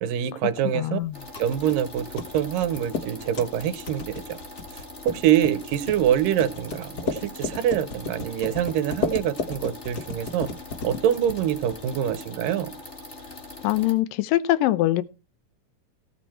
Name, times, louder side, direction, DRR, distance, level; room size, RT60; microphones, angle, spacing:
voice 1, 0.0-1.0 1.4-4.4 5.1-10.5 10.8-12.7, right 10 dB, 85° right, 2.6 m, -25 dB
voice 2, 0.7-1.2 13.6-15.0, left 15 dB, 85° left, 2.5 m, -23 dB
sound 1, 1.0-12.1, left 3 dB, 45° left, 1.3 m, -35 dB
sound 2, 1.1-13.9, left 2 dB, 20° left, 2.6 m, -42 dB
16.5 x 8.4 x 4.4 m
omnidirectional pair, 3.9 m